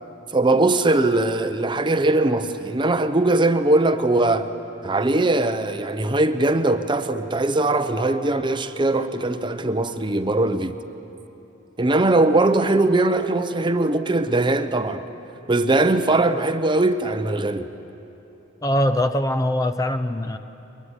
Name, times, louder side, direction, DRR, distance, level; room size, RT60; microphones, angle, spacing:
voice 1, 0.3-4.5 4.8-10.8 11.8-15.0 15.5-17.7, right 2 dB, 25° right, 0.8 m, -20 dB
voice 2, 18.6-20.4, left 1 dB, 20° left, 0.7 m, -22 dB
22.5 x 21.5 x 9.9 m
head